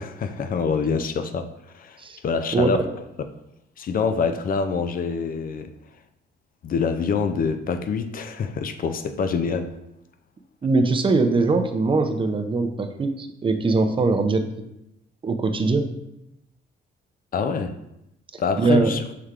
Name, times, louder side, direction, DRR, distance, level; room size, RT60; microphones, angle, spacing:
voice 1, 0.0-1.5 1.7-2.8 3.8-5.7 6.6-9.8 17.3-17.8 18.4-19.0, left 5 dB, 45° left, 9 dB, 0.4 m, -25 dB
voice 2, 10.6-14.5 15.2-15.9 18.6-19.0, right 3 dB, 25° right, 7 dB, 0.5 m, -21 dB
5.6 x 3.2 x 2.4 m, 0.85 s
cardioid pair, 90°, 20 cm